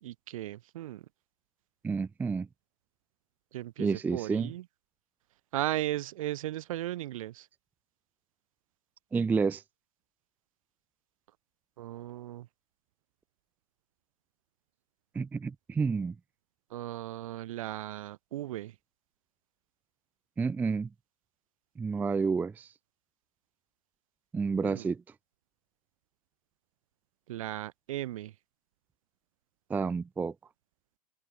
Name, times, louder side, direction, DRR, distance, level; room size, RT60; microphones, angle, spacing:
voice 1, 0.0-1.0 3.5-4.6 5.5-7.5 11.8-12.5 16.7-18.7 24.6-24.9 27.3-28.3, right 14 dB, 55° right, 1.4 m, -36 dB
voice 2, 1.8-2.5 3.8-4.5 9.1-9.6 15.1-16.2 20.4-20.9 21.8-22.7 24.3-25.0 29.7-30.3, right 5 dB, 10° right, 0.4 m, -30 dB
open air
figure-of-eight pair, 95°, 20 cm